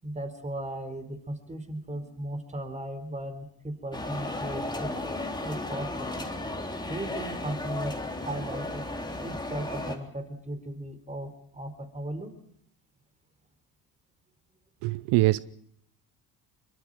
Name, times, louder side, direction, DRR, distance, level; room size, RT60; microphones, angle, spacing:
voice 1, 0.0-4.9 5.4-6.2 6.9-8.8 9.2-12.3, right 1 dB, 15° right, 9 dB, 4.4 m, -36 dB
sound 1, 3.9-10.0, left 2 dB, 10° left, 3.6 m, -34 dB
voice 2, 14.8-15.4, right 20 dB, 80° right, 17 dB, 0.7 m, -23 dB
24.0 x 22.5 x 5.1 m, 0.69 s
supercardioid pair, 90°, 40 cm